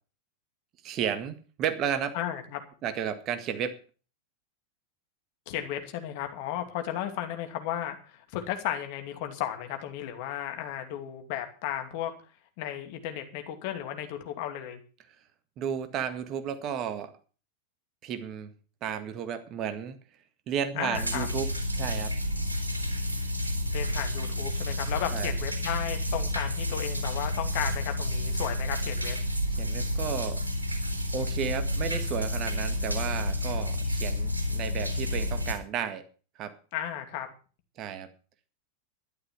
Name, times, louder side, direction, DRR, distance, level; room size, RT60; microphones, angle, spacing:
voice 1, 0.8-2.1 2.8-3.8 15.6-17.1 18.0-18.5 18.8-20.0 20.5-21.5 21.8-22.1 25.1-25.3 29.6-30.4 31.1-36.0 36.4-36.6 37.8-38.1, right 8 dB, 35° right, 10 dB, 1.8 m, -33 dB
voice 2, 2.1-2.6 5.5-12.1 12.6-14.8 20.8-21.3 23.7-29.2 36.7-37.3, left 11 dB, 45° left, 6 dB, 2.5 m, -34 dB
sound 1, 20.9-35.5, left 1 dB, 80° right, 3.8 m, -30 dB
12.5 x 11.5 x 5.9 m, 0.37 s
figure-of-eight pair, 90°, 0 cm